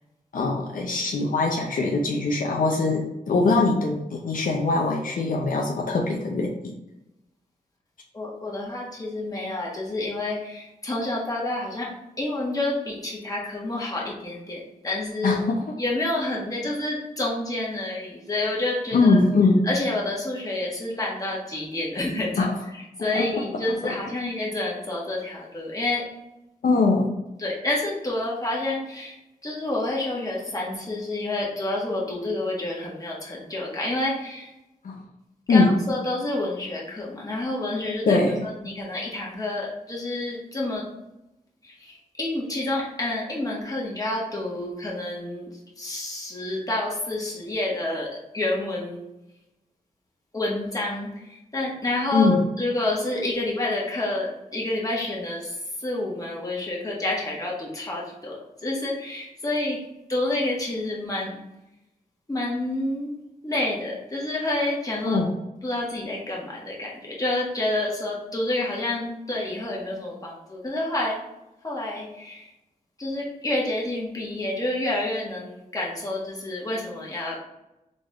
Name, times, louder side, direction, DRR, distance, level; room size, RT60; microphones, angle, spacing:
voice 1, 0.3-6.7 15.2-15.8 18.9-19.6 22.4-22.5 23.1-23.4 23.8-23.9 26.6-27.1 34.8-35.0 35.5-35.7 38.1-38.4 52.1-52.4 65.0-65.3, left 3 dB, 70° left, -1 dB, 0.6 m, -22 dB
voice 2, 8.1-11.9 12.2-15.4 15.8-19.2 19.6-22.5 23.0-26.0 27.4-29.2 29.4-34.5 35.5-38.2 38.6-40.8 41.6-49.0 50.3-59.8 60.1-61.4 62.3-63.1 63.4-65.2 65.6-71.2 71.6-72.5 73.0-77.4, left 2 dB, 25° left, -4 dB, 1.4 m, -29 dB
4.0 x 3.4 x 3.4 m, 0.91 s
wide cardioid pair, 95°, 15 cm